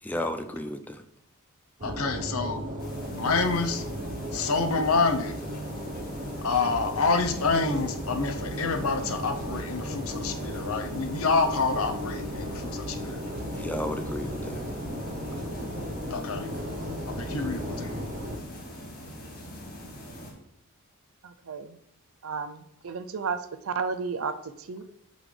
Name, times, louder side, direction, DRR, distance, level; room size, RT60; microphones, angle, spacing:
voice 1, 0.0-1.0 13.6-14.6, left 1 dB, 5° left, 6 dB, 0.4 m, -33 dB
voice 2, 1.8-2.6 3.1-3.8 4.3-5.3 6.4-13.2 16.1-16.5 17.1-17.9, left 4 dB, 70° left, 6 dB, 0.7 m, -27 dB
sound 1, 1.8-18.4, equal, 35° right, 0.9 m, -35 dB
sound 2, 2.8-20.3, equal, 45° left, 1.8 m, -42 dB
voice 3, 21.2-21.8 22.2-24.8, right 5 dB, 70° right, 11 dB, 0.5 m, -33 dB
11.0 x 3.9 x 3.3 m, 0.76 s
head